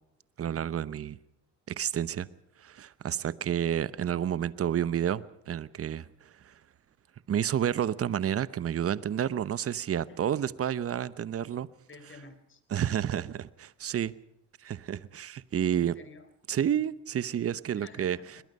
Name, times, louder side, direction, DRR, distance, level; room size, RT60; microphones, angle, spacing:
voice 1, 0.4-1.2 1.7-2.3 2.6-6.5 7.3-11.7 12.7-14.1 14.6-15.9 16.5-18.2, right 9 dB, 50° right, 1.0 m, -30 dB
voice 2, 11.9-12.6 15.8-16.3 17.7-18.4, left 3 dB, 40° left, 3.9 m, -51 dB
22.0 x 21.0 x 5.5 m
cardioid pair, 90°, 30 cm